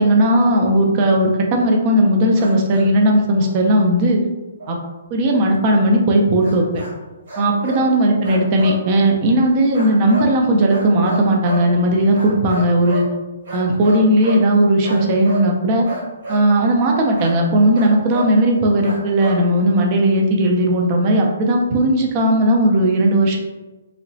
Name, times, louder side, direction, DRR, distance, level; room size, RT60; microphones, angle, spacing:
voice 1, 0.0-4.2 4.7-4.8 5.1-6.8 7.4-13.1 13.5-15.9 16.3-23.4, right 1 dB, 25° right, 1 dB, 0.4 m, -16 dB
sound 1, 2.4-2.9 3.3-3.6 4.6-4.8 6.4-6.9 7.3-7.8 8.2-8.8 9.7-10.3 10.7-11.7 12.1-13.1 13.5-14.5 14.8-15.5 15.8-16.5 17.2-17.4 17.7-18.4 18.8-19.4, equal, 45° right, 1.2 m, -30 dB
3.0 x 2.8 x 2.7 m, 1.1 s
hypercardioid pair, 170°, 0 cm